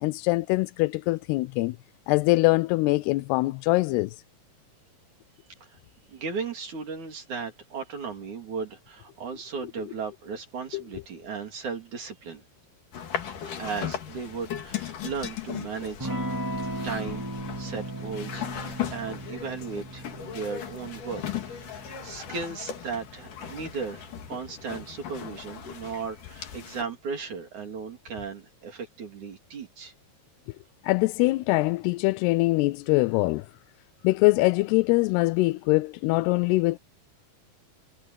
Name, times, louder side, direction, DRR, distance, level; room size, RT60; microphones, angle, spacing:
voice 1, 0.0-1.8 2.1-4.2 10.7-10.8 30.8-33.5 34.0-36.8, left 22 dB, 85° left, 2.6 m, -23 dB
voice 2, 6.1-12.4 13.6-16.2 16.8-17.3 17.6-29.9, right 5 dB, 50° right, 4.6 m, -36 dB
sound 1, 12.9-26.8, left 9 dB, 55° left, 3.8 m, -37 dB
Electric guitar / Strum, 16.0-24.3, right 1 dB, 10° right, 1.2 m, -37 dB
omnidirectional pair, 4.6 m